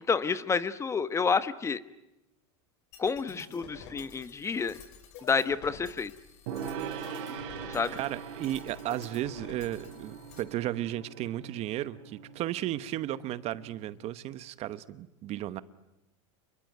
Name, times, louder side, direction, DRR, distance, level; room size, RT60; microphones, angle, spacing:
voice 1, 0.1-1.8 3.0-4.8 5.2-6.1 7.7-7.9, left 5 dB, 15° left, 13 dB, 1.0 m, -29 dB
sound 1, 2.9-10.4, left 5 dB, 65° left, 6.0 m, -50 dB
Gong, 6.5-13.9, right 7 dB, 70° right, 3.8 m, -42 dB
voice 2, 7.9-15.6, right 13 dB, 40° right, 14 dB, 1.1 m, -34 dB
27.5 x 22.5 x 9.3 m, 0.92 s
supercardioid pair, 125°, 16 cm